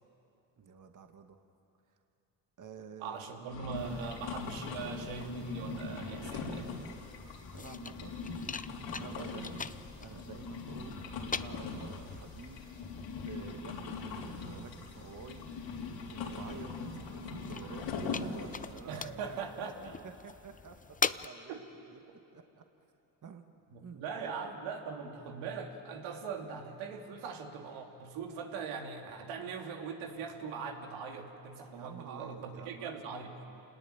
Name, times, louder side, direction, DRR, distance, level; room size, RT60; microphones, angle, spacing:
voice 1, 0.6-1.4 2.6-3.3 7.5-8.2 8.9-9.6 10.0-12.9 13.2-13.9 14.3-15.5 16.1-17.9 18.2-21.5 21.9-22.0 22.3-22.6 23.2-23.4 23.8-24.4 31.7-33.0 33.2-33.6, right 5 dB, 40° right, 6 dB, 1.9 m, -50 dB
voice 2, 3.0-6.7 18.9-19.9 21.5-21.6 23.7-33.4, right 5 dB, 80° right, 2 dB, 2.9 m, -41 dB
sound 1, 3.5-18.7, left 4 dB, 70° left, 4.2 m, -41 dB
sound 2, 3.7-21.3, left 5 dB, 15° left, 0.6 m, -44 dB
27.5 x 20.0 x 9.1 m, 2.8 s
supercardioid pair, 70°, 47 cm